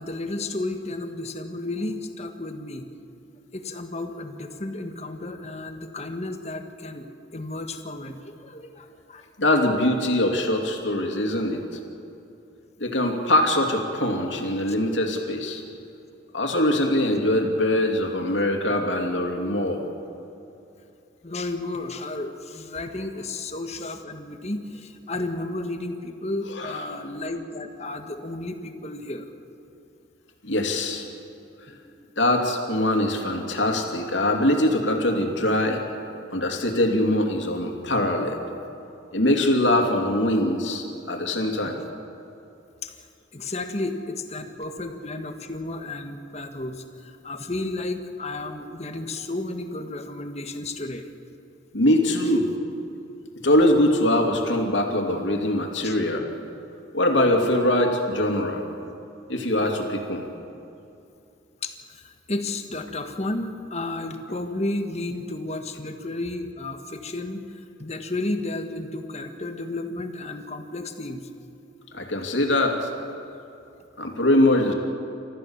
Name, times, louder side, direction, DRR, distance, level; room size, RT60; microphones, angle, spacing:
voice 1, 0.0-2.9 3.5-7.1 7.3-9.3 21.2-29.3 31.7-31.9 42.8-43.1 43.3-51.1 55.8-55.9 61.6-71.3, left 2 dB, 35° left, 6 dB, 1.5 m, -32 dB
voice 2, 9.4-11.6 12.8-15.6 16.3-19.9 26.5-26.8 30.4-31.0 32.2-35.8 36.3-38.4 39.1-41.8 51.7-52.5 53.4-56.3 56.9-58.6 59.3-60.3 71.9-72.9 74.0-74.7, left 1 dB, 75° left, 3 dB, 2.8 m, -22 dB
29.5 x 14.5 x 7.3 m, 2.8 s
head